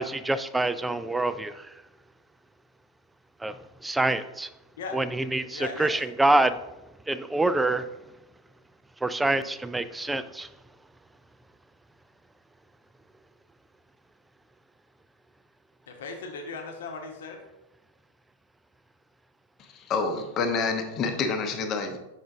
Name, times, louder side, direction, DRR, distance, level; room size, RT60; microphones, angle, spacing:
voice 1, 0.0-1.7 3.4-4.5 4.9-6.7 7.1-8.0 9.0-10.5, right 2 dB, 5° right, 13 dB, 0.3 m, -26 dB
voice 2, 5.5-5.9 15.9-17.4, left 4 dB, 60° left, 3 dB, 1.0 m, -37 dB
voice 3, 19.7-22.0, left 4 dB, 35° left, 5 dB, 0.8 m, -28 dB
6.2 x 4.9 x 3.5 m, 0.94 s
figure-of-eight pair, 90°, 0 cm